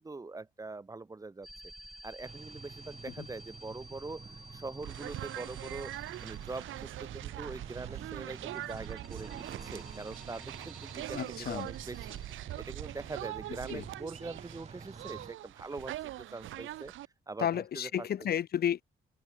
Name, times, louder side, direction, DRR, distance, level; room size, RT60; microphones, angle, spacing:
voice 1, 0.0-1.5 2.0-4.2 4.5-12.2 12.6-16.9 17.3-18.1, right 3 dB, 15° right, 1.0 m, -43 dB
sound 1, 1.4-7.3 8.1-13.1, equal, ahead, 3.1 m, -53 dB
sound 2, 2.2-15.3, right 5 dB, 35° right, 3.3 m, -50 dB
sound 3, 4.8-17.1, right 14 dB, 80° right, 1.2 m, -42 dB
voice 2, 11.1-11.7 13.7-13.8 17.4-18.8, left 10 dB, 55° left, 0.7 m, -32 dB
cardioid pair, 90°, 20 cm